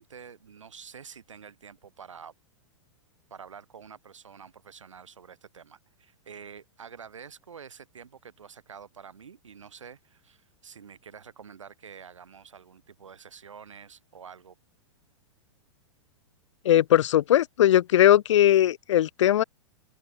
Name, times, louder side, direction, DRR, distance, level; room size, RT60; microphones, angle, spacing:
voice 1, 0.0-2.3 3.3-14.6 17.7-17.8, right 7 dB, 85° right, 5.0 m, -47 dB
voice 2, 16.7-19.4, left 12 dB, 75° left, 0.4 m, -19 dB
open air
hypercardioid pair, 115°, 16 cm